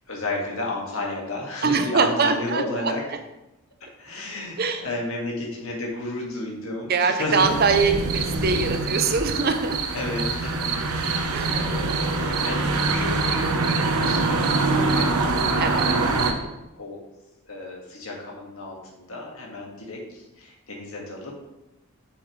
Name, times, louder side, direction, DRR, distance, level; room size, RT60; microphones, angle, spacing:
voice 1, 0.1-3.0 4.0-7.6 9.9-16.3 16.8-17.0 17.4-21.4, left 2 dB, 70° left, -1 dB, 1.8 m, -33 dB
voice 2, 1.6-2.9 4.6-4.8 6.9-9.8 11.3-11.6 13.7-14.2 15.6-15.9 16.4-16.5, right 4 dB, 45° right, 7 dB, 0.6 m, -23 dB
sound 1, 7.4-16.3, right 3 dB, 90° right, 0.9 m, -24 dB
7.0 x 6.9 x 3.2 m, 0.94 s
head